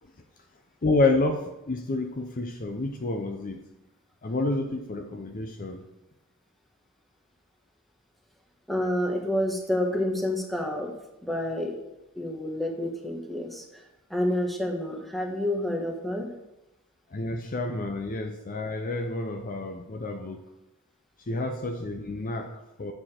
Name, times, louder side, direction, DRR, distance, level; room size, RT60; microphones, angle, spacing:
voice 1, 0.8-3.6 4.2-5.8 17.1-20.4 21.3-22.9, left 2 dB, 40° left, 4 dB, 0.6 m, -29 dB
voice 2, 8.7-10.9 11.2-11.8 12.2-13.8 14.1-16.3, left 1 dB, ahead, 1 dB, 1.2 m, -29 dB
8.9 x 6.9 x 4.4 m, 0.93 s
head